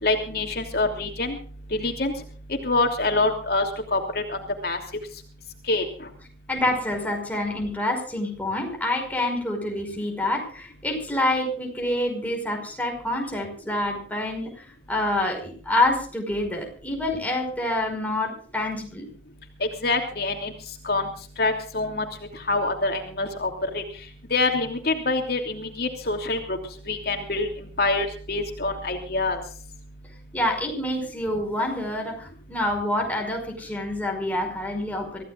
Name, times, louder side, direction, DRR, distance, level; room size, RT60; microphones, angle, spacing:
voice 1, 0.0-1.4 1.7-2.1 2.5-4.8 5.7-6.1 19.6-20.5 20.8-21.1 21.4-22.1 22.3-23.8 24.3-26.6 26.9-27.5 27.8-29.4, left 3 dB, 60° left, 4 dB, 3.0 m, -25 dB
voice 2, 6.5-19.1 30.3-35.2, left 1 dB, 10° left, 1 dB, 5.4 m, -27 dB
25.5 x 16.0 x 2.5 m, 0.43 s
head